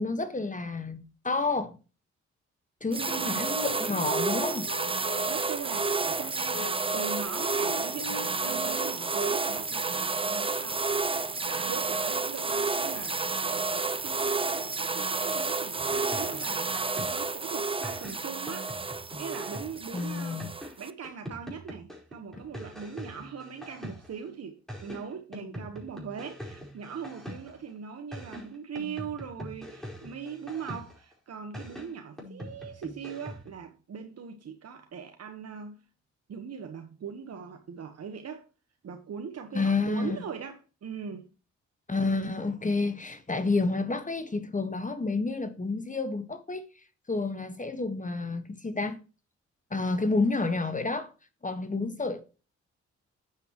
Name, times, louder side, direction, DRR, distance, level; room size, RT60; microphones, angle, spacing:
voice 1, 0.0-1.7 2.8-4.7 19.9-20.5 39.5-40.2 41.9-46.7 47.1-49.0 49.7-51.1 51.4-52.2, left 3 dB, 25° left, 1.5 m, -29 dB
sound 1, 2.9-20.9, right 3 dB, 20° right, 0.7 m, -30 dB
voice 2, 2.9-3.5 5.2-10.8 11.5-18.7 19.2-35.8 36.3-38.5 38.8-41.3, right 6 dB, 60° right, 1.3 m, -41 dB
Wind instrument woodwind instrument, 3.1-9.0, left 3 dB, 85° left, 4.1 m, -42 dB
sound 2, 15.8-17.4 17.8-24.3 24.7-27.7 28.1-31.1 31.5-33.6, equal, ahead, 4.7 m, -43 dB
9.2 x 8.1 x 3.0 m
cardioid pair, 60°, 29 cm